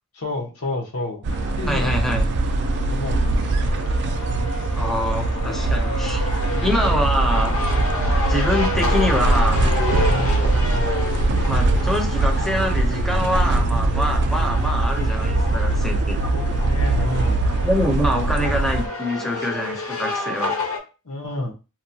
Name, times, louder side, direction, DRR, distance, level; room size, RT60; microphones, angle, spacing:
voice 1, 0.1-1.3 1.6-2.3 2.9-3.3 5.5-5.6 8.0-8.3 10.0-10.5 16.3-17.5 21.0-21.5, left 2 dB, 85° left, 0 dB, 0.9 m, -30 dB
sound 1, 1.2-18.9, right 2 dB, 50° right, 0.3 m, -21 dB
sound 2, 1.3-20.8, left 2 dB, 65° left, 0.7 m, -30 dB
voice 2, 1.7-2.3 4.8-6.2 6.6-7.6 8.3-9.7 11.4-16.2 17.6-20.5, equal, ahead, 2 dB, 0.5 m, -25 dB
2.8 x 2.2 x 2.6 m, 0.30 s
head